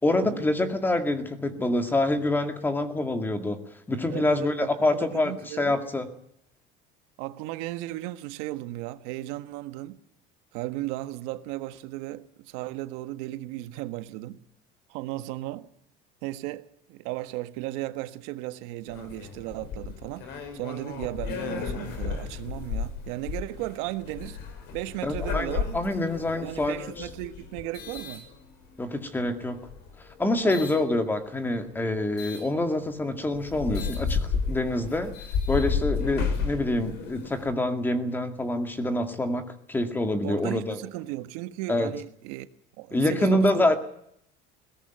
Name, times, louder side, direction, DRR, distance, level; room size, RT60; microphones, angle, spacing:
voice 1, 0.0-3.6 3.9-6.1 25.0-27.1 28.8-29.6 30.2-35.1 35.5-40.8 41.7-41.9 42.9-43.8, left 2 dB, 10° left, 2.1 m, -26 dB
voice 2, 4.1-5.8 7.2-10.0 10.5-14.4 14.9-15.7 16.2-24.4 24.7-25.6 26.4-28.2 30.4-30.7 40.2-42.5 42.8-43.8, right 16 dB, 85° right, 1.6 m, -35 dB
sound 1, 18.9-28.9 29.5-30.8 32.2-32.4 33.0-33.1 33.3-37.5, left 5 dB, 60° left, 5.1 m, -33 dB
21.0 x 17.5 x 9.2 m
cardioid pair, 165°, 20 cm